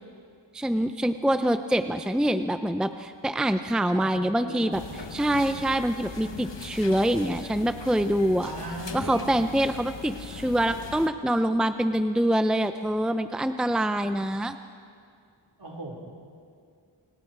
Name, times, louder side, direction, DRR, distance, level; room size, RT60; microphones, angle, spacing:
voice 1, 0.5-8.5 8.9-14.6, right 1 dB, ahead, 9 dB, 0.7 m, -25 dB
voice 2, 3.9-4.8 8.4-9.3 15.6-16.0, right 2 dB, 55° right, -2 dB, 4.8 m, -37 dB
sound 1, 4.7-11.1, left 5 dB, 65° left, 1.4 m, -40 dB
29.5 x 27.0 x 4.8 m, 2.3 s
wide cardioid pair, 70°, 46 cm